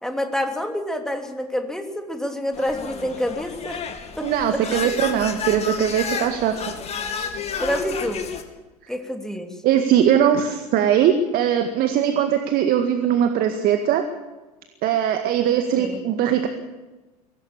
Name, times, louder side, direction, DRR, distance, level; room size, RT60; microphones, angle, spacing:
voice 1, 0.0-3.8 4.2-4.6 7.6-8.3 8.9-9.6 15.8-16.0, equal, 5° left, 4 dB, 3.1 m, -27 dB
sound 1, 2.5-8.4, left 6 dB, 30° left, 2.8 m, -31 dB
voice 2, 4.2-6.5 9.6-14.0 14.8-16.5, right 9 dB, 45° right, 6 dB, 1.9 m, -20 dB
23.5 x 17.5 x 7.4 m, 1.2 s
figure-of-eight pair, 80°, 20 cm